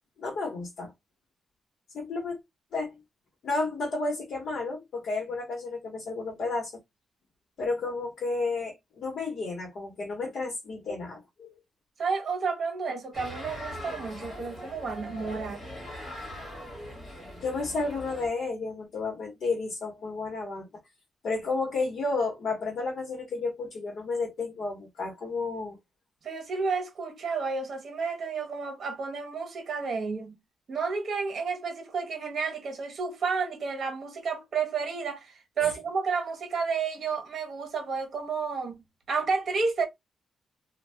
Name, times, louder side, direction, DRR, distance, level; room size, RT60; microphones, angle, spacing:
voice 1, 0.2-0.9 1.9-2.4 2.7-2.9 3.4-6.7 7.6-11.5 17.4-20.7 21.2-25.8 35.6-35.7, left 3 dB, 55° left, 1.0 m, -32 dB
voice 2, 12.0-15.7 26.2-30.4 30.7-38.8 39.1-39.8, right 5 dB, 50° right, 1.1 m, -31 dB
sound 1, 13.1-18.3, left 1 dB, 25° left, 1.4 m, -41 dB
2.6 x 2.2 x 3.3 m
wide cardioid pair, 170°, 0 cm